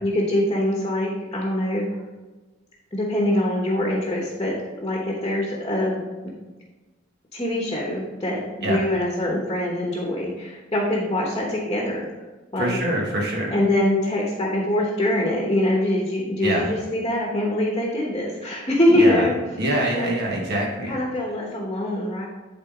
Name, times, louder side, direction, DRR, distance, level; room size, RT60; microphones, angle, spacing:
voice 1, 0.0-1.8 2.9-6.3 7.3-12.1 12.5-12.8 13.5-19.3 20.0-20.2 20.8-22.3, left 1 dB, 25° left, -2 dB, 1.2 m, -23 dB
voice 2, 12.6-13.5 16.4-16.6 18.9-19.3 19.6-20.9, right 1 dB, 55° right, -2 dB, 1.6 m, -24 dB
11.0 x 4.1 x 3.8 m, 1.2 s
head